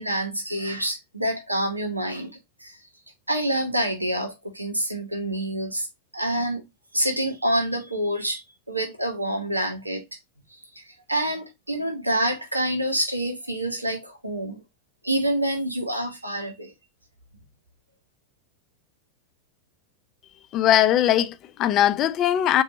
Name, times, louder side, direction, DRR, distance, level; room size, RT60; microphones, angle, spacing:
voice 1, 0.0-2.3 2.6-2.8 3.3-5.9 6.1-6.6 6.9-10.0 10.7-14.6 15.0-16.7, right 1 dB, 85° right, 1.1 m, -27 dB
voice 2, 20.5-22.6, left 11 dB, 35° left, 0.5 m, -20 dB
4.3 x 2.7 x 4.1 m
figure-of-eight pair, 90°, 0 cm